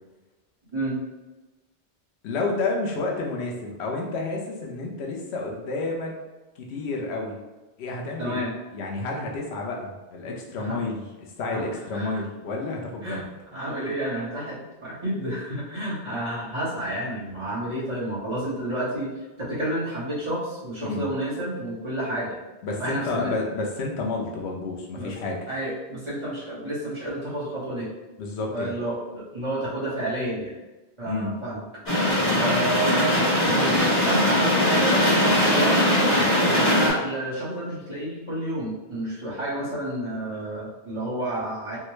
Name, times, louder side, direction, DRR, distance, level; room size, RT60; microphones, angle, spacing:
voice 1, 2.2-6.1 6.6-7.4 7.8-8.4 8.7-13.3 20.8-21.1 22.6-25.4 28.2-28.7 31.1-31.3, left 3 dB, 85° left, 0 dB, 0.9 m, -30 dB
voice 2, 8.2-8.5 10.6-10.9 11.5-11.6 11.9-12.2 13.0-13.2 13.5-22.4 22.8-23.3 25.0-25.1 25.5-27.9 28.5-30.6 31.0-31.6 32.3-35.8 36.4-41.8, right 1 dB, 30° right, -10 dB, 1.1 m, -30 dB
sound 1, 31.9-36.9, left 1 dB, 70° left, 1.5 m, -20 dB
3.6 x 2.1 x 3.0 m, 1.1 s
omnidirectional pair, 1.1 m